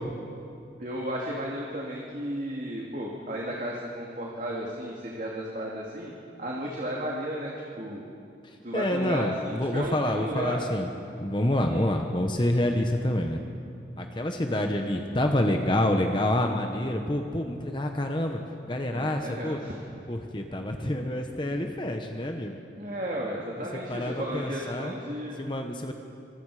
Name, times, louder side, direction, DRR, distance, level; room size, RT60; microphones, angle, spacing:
voice 1, 0.8-6.1 6.4-8.0 8.6-10.6 11.6-11.8 18.9-19.8 22.8-25.4, equal, 45° right, -3 dB, 2.4 m, -34 dB
voice 2, 8.7-10.9 11.2-13.4 14.0-18.4 18.7-19.6 20.1-22.6 23.9-24.9 25.4-25.9, left 1 dB, 25° left, 4 dB, 1.1 m, -27 dB
25.5 x 24.5 x 5.0 m, 2.6 s
head